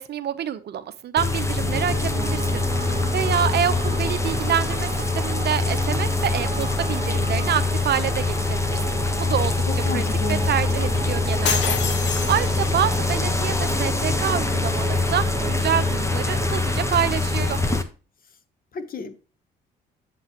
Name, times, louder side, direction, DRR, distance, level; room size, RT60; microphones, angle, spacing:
voice 1, 0.0-8.8 9.2-10.0 10.3-17.6, right 9 dB, 60° right, 0.8 m, -27 dB
sound 1, 1.2-17.8, left 3 dB, 15° left, 1.1 m, -24 dB
Piano, 1.6-17.8, right 5 dB, 25° right, 0.7 m, -34 dB
voice 2, 9.7-10.5 18.7-19.2, left 5 dB, 45° left, 1.2 m, -32 dB
sound 2, 11.5-12.9, left 8 dB, 65° left, 1.0 m, -27 dB
8.1 x 7.6 x 3.0 m
supercardioid pair, 80°, 20 cm